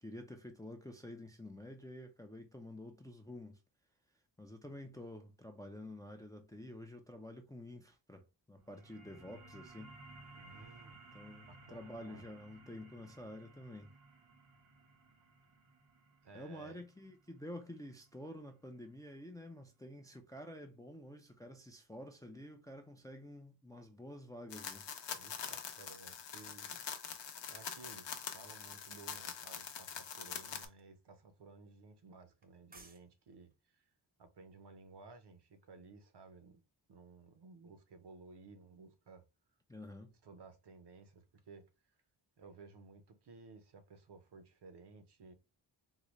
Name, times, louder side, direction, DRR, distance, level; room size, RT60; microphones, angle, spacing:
voice 1, 0.0-3.6 4.4-9.9 11.1-13.9 16.3-24.9 39.7-40.1, left 1 dB, 10° left, 0.4 m, -49 dB
sound 1, 8.6-19.7, right 2 dB, 90° right, 1.2 m, -59 dB
voice 2, 10.3-11.0 11.5-12.3 16.2-16.8 25.1-26.8 27.5-33.9 34.2-36.6 36.9-39.2 40.2-41.7 42.4-45.3, right 4 dB, 60° right, 0.8 m, -56 dB
sound 2, 24.5-30.7, left 7 dB, 65° left, 0.7 m, -44 dB
sound 3, 30.6-30.8 32.4-33.0 33.3-33.5, right 2 dB, 20° right, 0.7 m, -57 dB
3.8 x 2.1 x 3.0 m
cardioid pair, 90°, 46 cm